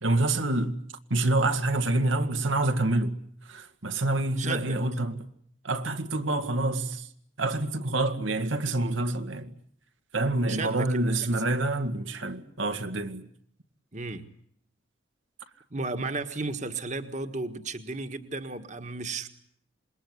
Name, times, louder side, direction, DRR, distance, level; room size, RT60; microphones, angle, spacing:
voice 1, 0.0-0.8 1.1-3.2 3.5-5.2 5.6-7.1 7.4-9.5 10.1-13.3, right 2 dB, 90° right, 2.0 m, -27 dB
voice 2, 4.4-4.8 10.5-11.4 13.9-14.3 15.7-19.3, right 3 dB, 40° right, 1.5 m, -34 dB
27.0 x 21.5 x 9.6 m
head